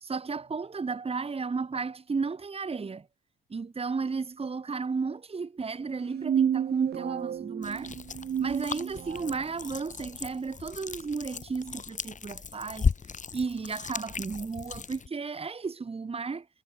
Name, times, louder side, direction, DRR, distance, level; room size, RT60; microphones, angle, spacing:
voice 1, 0.0-3.1 3.5-7.9 8.4-12.9 13.3-16.5, right 4 dB, 30° right, 2.7 m, -33 dB
sound 1, 6.0-9.4, right 9 dB, 55° right, 1.5 m, -31 dB
sound 2, 7.6-15.1, left 5 dB, 40° left, 5.6 m, -36 dB
cardioid pair, 90°, 20 cm